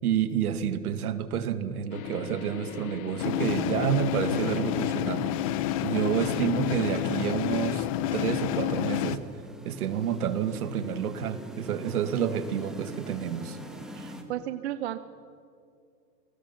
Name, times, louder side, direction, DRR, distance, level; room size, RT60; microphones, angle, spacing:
voice 1, 0.0-5.3 5.8-9.2 9.6-13.6, right 9 dB, 65° right, 11 dB, 2.1 m, -29 dB
sound 1, 1.9-7.1, left 11 dB, 60° left, 1.5 m, -40 dB
sound 2, 3.2-9.2, left 12 dB, 20° left, 0.6 m, -29 dB
sound 3, 7.8-14.2, right 1 dB, ahead, 1.7 m, -45 dB
voice 2, 13.9-15.0, right 12 dB, 45° right, 11 dB, 0.9 m, -34 dB
29.5 x 19.0 x 5.9 m, 2.4 s
hypercardioid pair, 155°, 48 cm